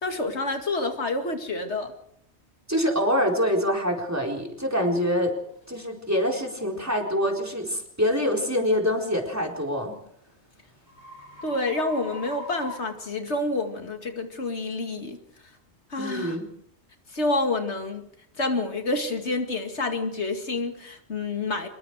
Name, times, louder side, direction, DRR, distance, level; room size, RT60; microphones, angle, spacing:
voice 1, 0.0-1.9 11.4-15.2 15.9-16.4 17.1-18.1 18.4-21.7, left 2 dB, 80° left, 5 dB, 2.5 m, -28 dB
voice 2, 2.7-5.3 5.7-10.0 16.0-16.5, equal, 15° right, 1 dB, 4.2 m, -25 dB
sound 1, 4.9-5.0 5.6-5.8 6.4-6.6 9.2-13.7, left 1 dB, 35° left, 6.4 m, -43 dB
26.0 x 21.5 x 4.9 m, 0.69 s
omnidirectional pair, 1.1 m